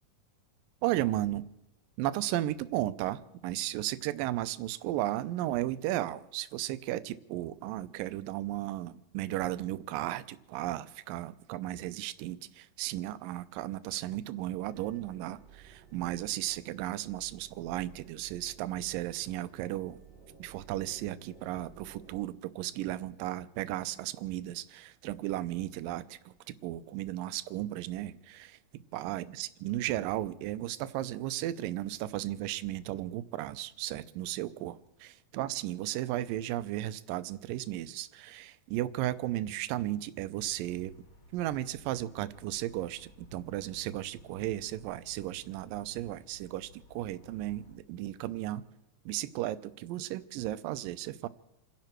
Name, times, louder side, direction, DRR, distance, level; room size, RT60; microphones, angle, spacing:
voice 1, 0.8-1.5 2.0-20.0 20.4-40.9 41.3-48.6 49.1-51.3, right 14 dB, 80° right, 2.3 m, -35 dB
sound 1, 14.7-22.2, right 6 dB, 15° right, 1.9 m, -55 dB
sound 2, 40.3-47.8, left 1 dB, 25° left, 1.6 m, -58 dB
29.0 x 11.0 x 4.5 m
omnidirectional pair, 4.1 m